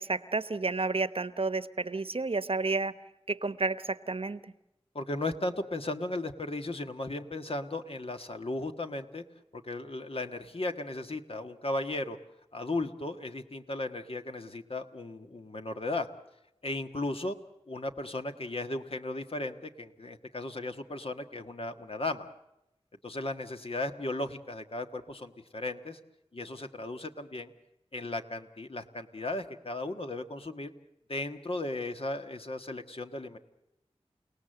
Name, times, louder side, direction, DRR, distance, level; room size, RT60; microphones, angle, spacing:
voice 1, 0.0-3.0 3.3-4.4, right 3 dB, 60° right, 15 dB, 0.9 m, -31 dB
voice 2, 4.9-9.2 9.5-12.2 12.5-16.1 16.6-17.4 17.7-22.3 23.0-26.0 26.3-27.5 27.9-30.7 31.1-33.4, left 2 dB, 60° left, 7 dB, 1.6 m, -36 dB
29.5 x 18.0 x 7.8 m, 0.90 s
wide cardioid pair, 55°, 11 cm